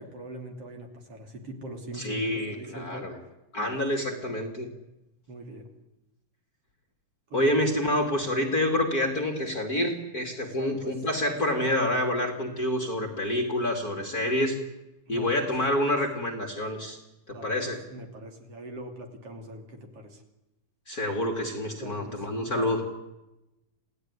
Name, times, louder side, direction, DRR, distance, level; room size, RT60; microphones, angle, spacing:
voice 1, 0.0-3.1 5.3-5.7 7.3-7.5 10.6-11.0 15.1-15.5 17.3-20.2 21.8-22.9, right 1 dB, 50° right, 3 dB, 3.7 m, -42 dB
voice 2, 1.9-3.2 3.5-4.7 7.3-14.5 15.1-17.0 17.3-17.8 20.9-22.8, left 1 dB, 30° left, 3 dB, 2.7 m, -27 dB
28.0 x 17.0 x 9.8 m, 0.96 s
omnidirectional pair, 3.7 m